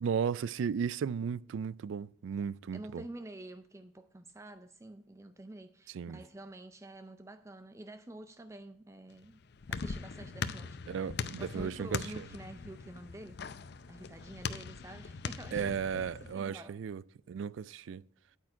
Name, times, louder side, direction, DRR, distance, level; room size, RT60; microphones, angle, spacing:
voice 1, 0.0-3.0 5.9-6.2 10.9-11.9 15.5-17.0 17.3-18.0, right 7 dB, 80° right, 0.3 m, -35 dB
voice 2, 2.7-9.4 9.7-11.0 11.4-13.4 13.9-16.8, right 1 dB, 15° right, 0.4 m, -48 dB
sound 1, 9.1-16.3, left 5 dB, 60° left, 0.5 m, -41 dB
8.8 x 8.6 x 4.8 m
head